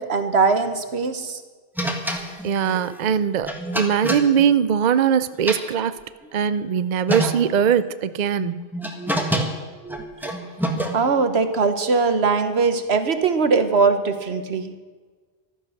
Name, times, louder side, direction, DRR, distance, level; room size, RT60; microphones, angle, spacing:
voice 1, 0.0-1.4 10.2-10.3 10.9-14.7, right 4 dB, 80° right, 9 dB, 1.4 m, -21 dB
sound 1, 1.8-5.1 5.3-6.4 6.8-6.9 7.1-7.7 8.4-11.2, right 1 dB, ahead, 1.5 m, -27 dB
voice 2, 2.4-6.0 6.3-8.6, right 8 dB, 50° right, 14 dB, 0.6 m, -21 dB
15.0 x 12.5 x 6.5 m, 1.4 s
omnidirectional pair, 1.1 m